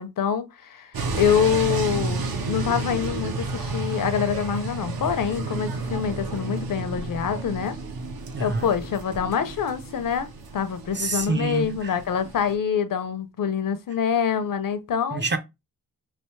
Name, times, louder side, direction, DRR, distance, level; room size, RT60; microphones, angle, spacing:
voice 1, 0.0-7.8 8.4-15.2, left 7 dB, 65° left, 0.6 m, -26 dB
sound 1, 0.9-12.5, right 3 dB, 75° right, 0.9 m, -31 dB
voice 2, 8.3-8.7 10.9-11.9 15.1-15.4, right 3 dB, 30° right, 0.5 m, -27 dB
3.3 x 2.9 x 3.1 m
wide cardioid pair, 105°, 36 cm